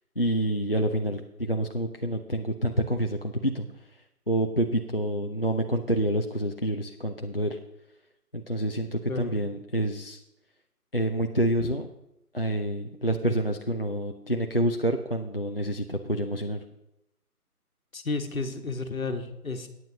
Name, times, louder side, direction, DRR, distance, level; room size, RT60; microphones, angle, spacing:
voice 1, 0.2-3.7 4.3-7.6 8.3-10.2 10.9-11.9 12.3-16.6, right 1 dB, 40° left, 4 dB, 0.5 m, -27 dB
voice 2, 17.9-19.7, left 3 dB, 60° left, 6 dB, 1.4 m, -32 dB
15.0 x 9.3 x 2.9 m, 0.86 s
figure-of-eight pair, 165°, 47 cm